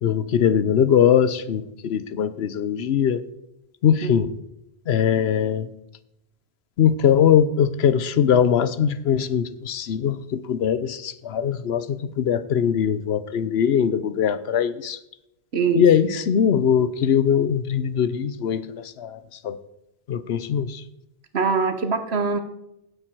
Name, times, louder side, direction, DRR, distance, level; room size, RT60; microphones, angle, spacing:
voice 1, 0.0-3.2 3.8-4.3 4.9-5.7 6.8-15.0 15.7-19.6 20.1-20.8, left 8 dB, 80° left, 15 dB, 1.0 m, -21 dB
voice 2, 4.0-4.3 15.5-15.8 21.3-22.4, right 5 dB, 85° right, 9 dB, 1.4 m, -23 dB
16.5 x 8.7 x 4.6 m, 0.87 s
omnidirectional pair, 1.0 m